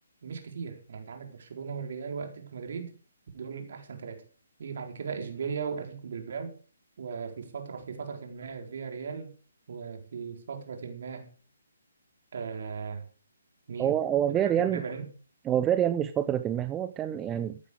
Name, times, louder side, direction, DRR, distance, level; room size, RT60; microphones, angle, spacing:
voice 1, 0.2-2.9 3.3-4.2 4.6-6.5 7.0-9.3 9.7-11.3 12.3-13.1 13.7-14.0 14.3-15.1, right 6 dB, 55° right, 4 dB, 4.3 m, -37 dB
voice 2, 13.8-14.8 15.4-17.6, right 10 dB, 15° right, 11 dB, 0.8 m, -27 dB
15.0 x 12.0 x 5.0 m, 0.37 s
figure-of-eight pair, 140°, 0 cm